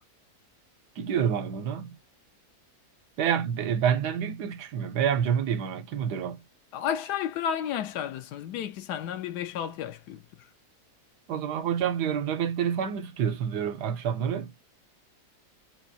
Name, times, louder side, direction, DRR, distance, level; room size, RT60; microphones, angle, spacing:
voice 1, 1.0-2.0 3.2-6.4 11.3-14.5, right 8 dB, 85° right, 1.3 m, -28 dB
voice 2, 6.7-10.5, left 9 dB, 85° left, 1.2 m, -32 dB
3.9 x 2.4 x 2.7 m
omnidirectional pair, 1.7 m